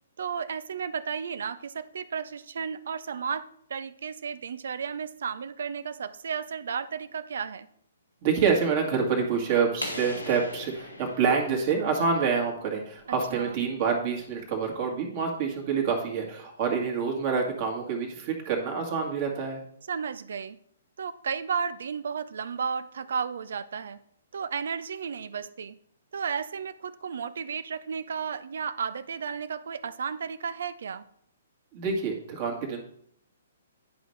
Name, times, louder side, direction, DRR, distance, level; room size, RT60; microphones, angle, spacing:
voice 1, 0.2-7.7 13.3-13.6 19.9-20.6 21.0-24.0 24.3-25.8 26.1-31.0, right 6 dB, 60° right, 16 dB, 0.5 m, -33 dB
voice 2, 8.2-19.6 31.7-32.8, right 5 dB, 40° right, 0 dB, 1.8 m, -27 dB
sound 1, 9.8-12.5, left 1 dB, 85° left, 1.7 m, -39 dB
10.5 x 5.1 x 3.2 m, 0.69 s
figure-of-eight pair, 125°, 0 cm